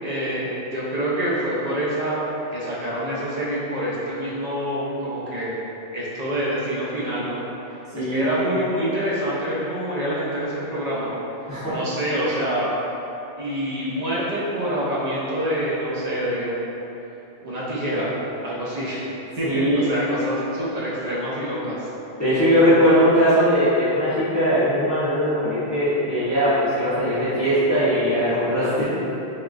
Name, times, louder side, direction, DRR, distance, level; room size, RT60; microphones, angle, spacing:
voice 1, 0.0-2.2 2.5-5.6 5.9-7.4 8.0-11.1 11.7-12.7 13.4-16.7 17.4-18.2 18.4-19.0 19.4-21.9, equal, 60° right, -8 dB, 0.4 m, -26 dB
voice 2, 7.9-8.3 11.5-11.7 19.4-19.9 22.2-28.8, equal, 15° left, -15 dB, 0.6 m, -20 dB
3.6 x 2.3 x 2.4 m, 3.0 s
omnidirectional pair, 1.2 m